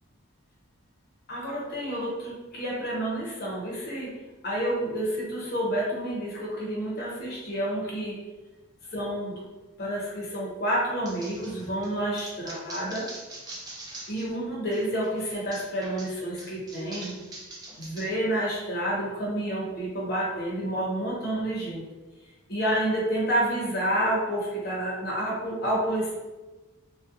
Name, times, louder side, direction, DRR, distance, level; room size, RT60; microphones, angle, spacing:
voice 1, 1.3-4.1 4.4-8.2 8.9-9.4 9.8-13.1 14.1-17.2 17.8-21.9 22.5-26.1, right 1 dB, 50° left, -5 dB, 0.7 m, -29 dB
sound 1, 11.1-14.4 14.7-18.1, right 2 dB, 20° right, 0.3 m, -43 dB
2.4 x 2.1 x 2.6 m, 1.2 s
head